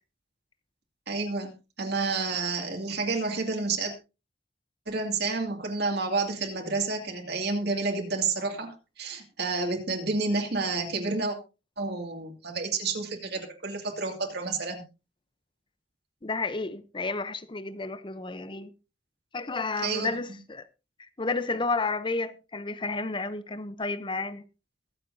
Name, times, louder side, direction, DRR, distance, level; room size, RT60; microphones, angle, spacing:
voice 1, 1.1-1.5 1.8-3.9 4.9-11.4 11.8-14.8 19.8-20.1, right 3 dB, 60° right, 2.3 m, -30 dB
voice 2, 16.2-18.7 19.3-20.6 21.0-24.4, left 3 dB, 25° left, 0.7 m, -31 dB
23.0 x 7.6 x 2.7 m
head